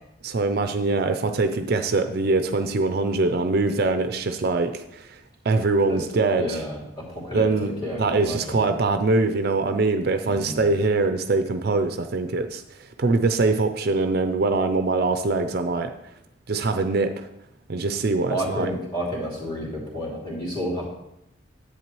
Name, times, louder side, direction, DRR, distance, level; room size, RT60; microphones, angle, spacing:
voice 1, 0.2-5.1 5.5-6.6 7.3-7.7 8.0-12.6 13.0-15.9 16.5-17.1 17.7-18.7, right 3 dB, 50° right, 8 dB, 0.5 m, -23 dB
voice 2, 6.4-8.6 10.2-10.6 18.3-20.9, equal, 25° left, -5 dB, 2.6 m, -31 dB
10.5 x 8.0 x 3.1 m, 0.84 s
head